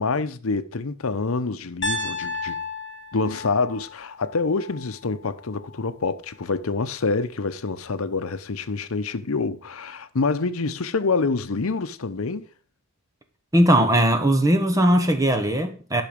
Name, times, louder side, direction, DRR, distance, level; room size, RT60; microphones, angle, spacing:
voice 1, 0.0-2.6 3.1-12.5, left 4 dB, 75° left, 0.8 m, -26 dB
Piano, 1.8-5.9, left 3 dB, 55° left, 1.3 m, -33 dB
voice 2, 13.5-16.0, right 1 dB, 15° right, 1.2 m, -19 dB
11.5 x 6.0 x 5.2 m
head